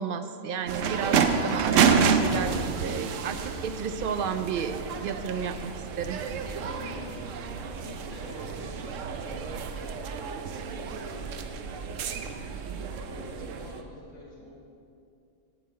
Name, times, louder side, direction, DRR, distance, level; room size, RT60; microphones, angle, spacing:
voice 1, 0.0-1.8 2.0-6.2, right 6 dB, 60° right, 9 dB, 0.6 m, -33 dB
sound 1, 0.7-13.8, right 6 dB, 85° right, 1.0 m, -29 dB
voice 2, 6.6-10.3 10.7-14.6, left 2 dB, 75° left, -4 dB, 2.1 m, -46 dB
8.0 x 5.9 x 7.7 m, 2.5 s
omnidirectional pair, 1.3 m